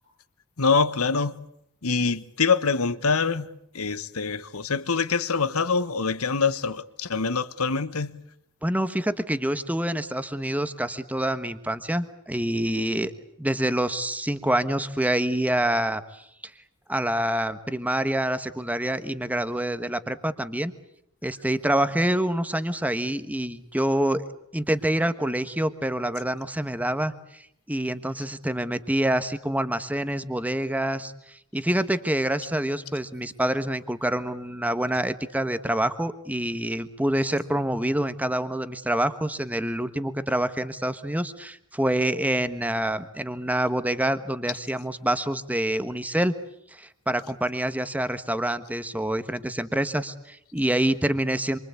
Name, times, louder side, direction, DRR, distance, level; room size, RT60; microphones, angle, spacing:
voice 1, 0.6-1.4 1.8-3.5 3.7-8.2, left 5 dB, 75° left, 1.3 m, -25 dB
voice 2, 8.6-13.1 13.4-16.2 16.9-20.7 21.2-24.2 24.5-27.4 27.7-31.1 31.5-46.3 46.7-51.6, right 1 dB, 5° right, 1.4 m, -26 dB
27.0 x 24.5 x 8.4 m
head